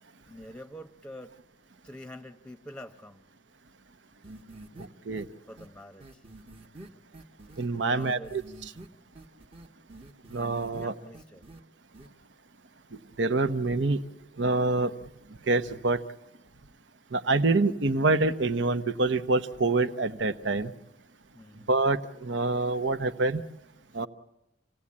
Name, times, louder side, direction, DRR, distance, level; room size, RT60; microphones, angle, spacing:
voice 1, 0.2-1.4 1.8-3.3 5.5-6.2 7.7-8.4 10.7-11.5 21.3-21.7, equal, 5° left, 9 dB, 0.8 m, -46 dB
sound 1, 4.2-4.9 5.2-5.3 5.6-5.7 6.0-7.7 8.0-8.9 9.2-10.9 11.1-11.6 11.9-12.1, right 1 dB, 30° right, 1.1 m, -47 dB
voice 2, 4.8-5.3 7.6-8.7 10.3-10.9 13.2-14.0 14.4-14.9 15.5-16.0 17.1-20.7 21.7-23.4 23.9-24.1, right 3 dB, 80° right, 11 dB, 0.9 m, -26 dB
27.5 x 17.5 x 8.6 m, 0.91 s
head